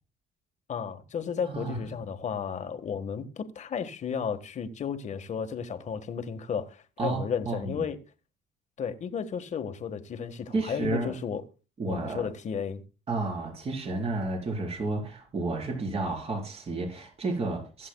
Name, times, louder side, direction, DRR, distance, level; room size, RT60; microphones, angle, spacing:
voice 1, 0.7-8.0 8.8-11.4 11.9-12.8, left 7 dB, 45° left, 1.5 m, -33 dB
voice 2, 1.4-1.8 7.0-7.8 10.5-11.1 11.8-12.3 13.1-17.9, right 3 dB, 35° right, 4.3 m, -31 dB
23.0 x 7.9 x 2.3 m
cardioid pair, 110°, 17 cm